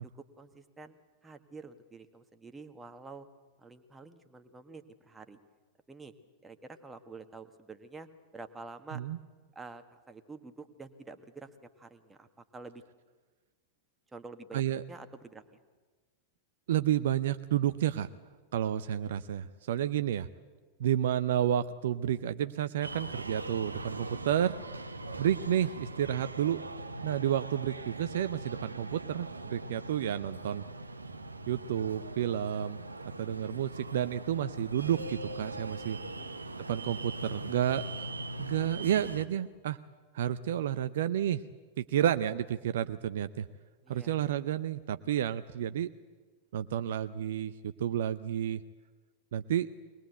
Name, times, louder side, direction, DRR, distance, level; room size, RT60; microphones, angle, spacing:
voice 1, 0.4-1.0 1.2-3.3 3.6-5.4 5.9-6.1 6.4-8.1 8.3-9.0 9.5-11.5 11.8-12.8 14.1-14.6 14.9-15.4 25.6-25.7 43.8-44.1, right 3 dB, 10° right, 8 dB, 1.6 m, -48 dB
voice 2, 14.5-14.8 16.7-18.1 18.5-20.3 20.8-24.6 25.2-26.7 27.0-30.6 31.5-32.8 33.2-36.0 36.7-38.1 38.4-39.8 40.1-41.4 41.8-43.5 43.9-45.9 46.5-48.6 49.3-49.7, right 10 dB, 60° right, 12 dB, 0.6 m, -30 dB
sound 1, 22.8-39.3, right 2 dB, 80° right, 1.2 m, -41 dB
22.5 x 20.0 x 8.0 m, 1.4 s
figure-of-eight pair, 90°, 0 cm